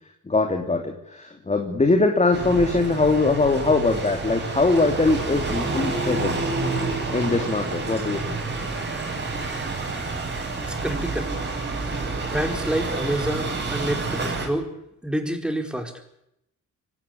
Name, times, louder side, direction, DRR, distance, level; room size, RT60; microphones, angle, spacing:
voice 1, 0.3-6.5 7.1-8.4, left 3 dB, 20° left, 4 dB, 3.0 m, -22 dB
sound 1, 2.3-14.5, right 3 dB, 35° right, 7.7 m, -28 dB
voice 2, 10.7-11.3 12.2-14.7 15.0-15.9, right 1 dB, 5° right, 5 dB, 4.7 m, -28 dB
24.0 x 18.0 x 8.5 m, 0.81 s
cardioid pair, 90°, 30 cm